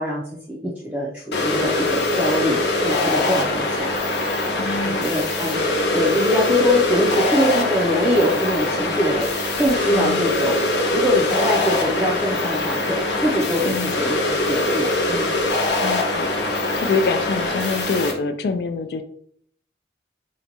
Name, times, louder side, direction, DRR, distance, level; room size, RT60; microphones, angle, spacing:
voice 1, 0.0-3.9 4.8-5.7 5.9-10.6 10.9-15.3, left 1 dB, 10° right, -5 dB, 0.4 m, -23 dB
sound 1, 1.3-18.1, left 2 dB, 75° left, 0.7 m, -22 dB
voice 2, 4.6-5.1 9.9-10.3 13.7-13.9 15.8-16.3 16.7-19.0, left 4 dB, 60° left, 9 dB, 0.3 m, -25 dB
3.8 x 2.2 x 2.9 m, 0.63 s
head